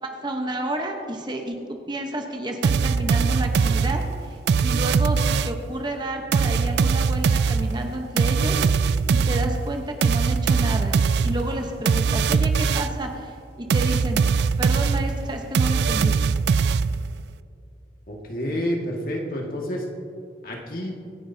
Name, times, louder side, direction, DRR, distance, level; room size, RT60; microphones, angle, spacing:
voice 1, 0.0-4.0 4.6-8.9 9.3-11.0 11.2-14.2 14.6-16.2, right 1 dB, 25° right, 3 dB, 1.0 m, -30 dB
sound 1, 2.6-5.7 6.3-13.1 13.7-17.2, right 5 dB, 65° right, 0.3 m, -21 dB
voice 2, 18.1-19.9 20.4-20.9, equal, 50° left, -1 dB, 1.9 m, -29 dB
25.0 x 10.0 x 2.8 m, 2.4 s
head